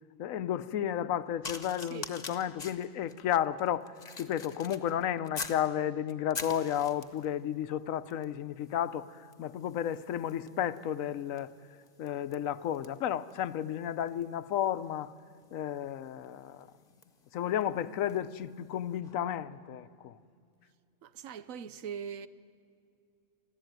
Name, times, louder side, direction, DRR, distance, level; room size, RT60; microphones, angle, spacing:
voice 1, 0.2-3.9 4.2-11.5 12.0-15.1 15.5-16.7 17.3-20.2, left 10 dB, 85° left, 1.1 m, -32 dB
sound 1, 1.4-5.7 6.1-7.3 8.1-8.3 8.6-18.3 19.0-19.2, left 4 dB, 35° left, 1.2 m, -46 dB
voice 2, 21.0-22.3, right 7 dB, 85° right, 1.2 m, -41 dB
23.5 x 15.0 x 9.2 m
omnidirectional pair, 1.4 m